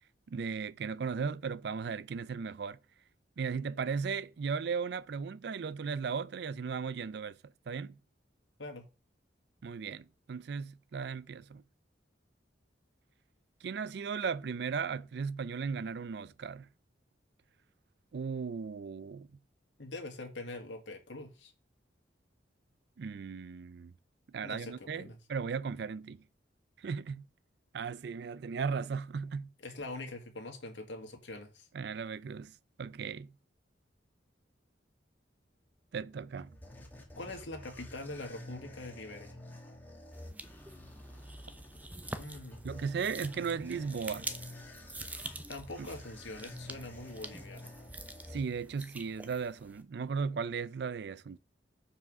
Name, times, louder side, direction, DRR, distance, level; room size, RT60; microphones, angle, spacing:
voice 1, 0.3-2.8 3.4-7.4 7.7-8.0 9.6-11.6 13.6-16.7 18.1-19.3 23.0-23.9 24.3-26.2 26.8-27.2 27.7-29.5 31.7-32.5 32.8-33.3 35.9-36.5 42.6-44.3 45.8-45.9 48.3-51.4, right 5 dB, 65° right, 0.4 m, -36 dB
voice 2, 19.8-21.5 24.4-25.2 29.6-31.7 37.2-39.4 42.2-42.7 45.5-47.7, left 2 dB, 85° left, 1.8 m, -43 dB
sound 1, 36.1-49.0, left 1 dB, 10° left, 1.4 m, -50 dB
sound 2, 40.1-49.8, right 2 dB, 10° right, 0.5 m, -46 dB
5.8 x 4.8 x 6.0 m
head